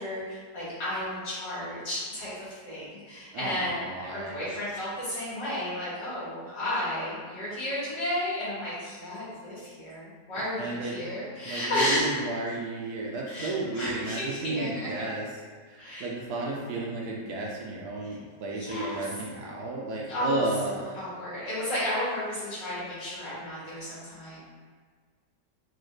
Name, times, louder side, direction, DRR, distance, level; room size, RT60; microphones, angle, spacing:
voice 1, 0.0-12.1 13.3-15.1 15.8-16.1 18.5-19.0 20.1-20.4 20.7-24.4, left 1 dB, 90° left, -11 dB, 2.4 m, -33 dB
voice 2, 3.3-4.5 10.6-11.1 11.5-15.3 15.7-21.0, right 2 dB, 70° right, -2 dB, 0.9 m, -33 dB
4.6 x 2.3 x 3.1 m, 1.5 s
omnidirectional pair, 1.9 m